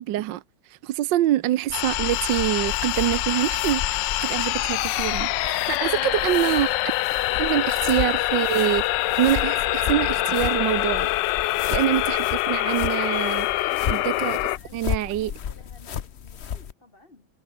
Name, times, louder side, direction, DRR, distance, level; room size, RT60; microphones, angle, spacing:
voice 1, 0.0-6.7 7.4-8.8 9.2-11.1 11.7-13.6 13.9-14.4 14.7-15.3, right 13 dB, 70° right, 1.3 m, -25 dB
sound 1, 1.7-14.6, left 16 dB, 75° left, 1.2 m, -25 dB
sound 2, 1.7-16.7, left 8 dB, 50° left, 0.8 m, -34 dB
voice 2, 5.7-6.4 13.7-17.3, left 3 dB, 25° left, 2.4 m, -50 dB
omnidirectional pair, 2.2 m